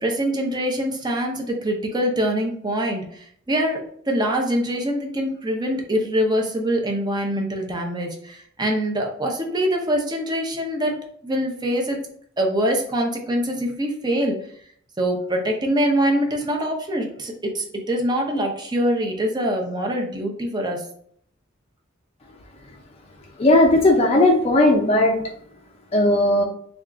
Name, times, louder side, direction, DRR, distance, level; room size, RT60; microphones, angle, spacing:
voice 1, 0.0-3.8 4.1-12.0 12.4-14.4 15.0-20.8, equal, 20° right, 1 dB, 0.7 m, -24 dB
voice 2, 23.4-25.3 25.9-26.4, left 1 dB, 30° left, 0 dB, 0.5 m, -16 dB
3.4 x 2.4 x 3.7 m, 0.62 s
head